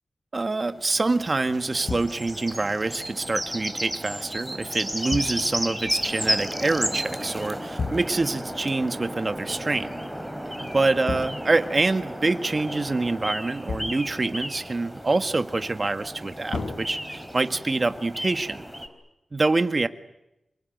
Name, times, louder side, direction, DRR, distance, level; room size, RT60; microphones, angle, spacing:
voice 1, 0.3-10.0 10.6-18.6 19.3-19.9, right 3 dB, 40° right, 9 dB, 1.7 m, -26 dB
sound 1, 0.7-18.9, equal, ahead, 4.0 m, -33 dB
sound 2, 1.9-2.5 5.1-5.8 7.8-8.5 11.1-12.0 13.7-14.2 16.5-17.6, left 4 dB, 80° left, 4.3 m, -34 dB
28.0 x 20.0 x 9.4 m, 0.91 s
wide cardioid pair, 75°, 0 cm